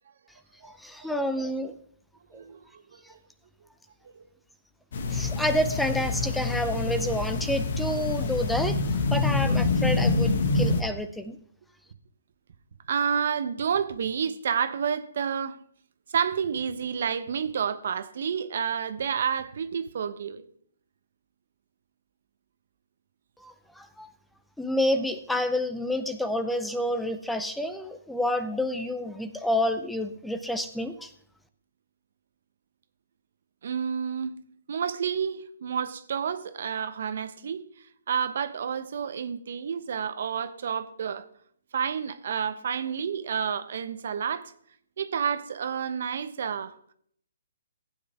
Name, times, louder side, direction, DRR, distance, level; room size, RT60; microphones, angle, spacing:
voice 1, 0.6-1.7 5.1-8.8 9.1-11.4 23.4-24.1 24.6-31.1, left 1 dB, ahead, 0.6 m, -29 dB
voice 2, 2.3-2.8 4.2-4.3 12.9-15.6 16.1-20.4 33.6-34.4 34.7-37.6 38.1-41.2 41.7-44.5 45.0-46.8, right 7 dB, 60° right, 0.9 m, -29 dB
sound 1, 4.9-10.8, left 3 dB, 60° left, 1.4 m, -26 dB
15.5 x 9.3 x 3.5 m
hypercardioid pair, 145°, 0 cm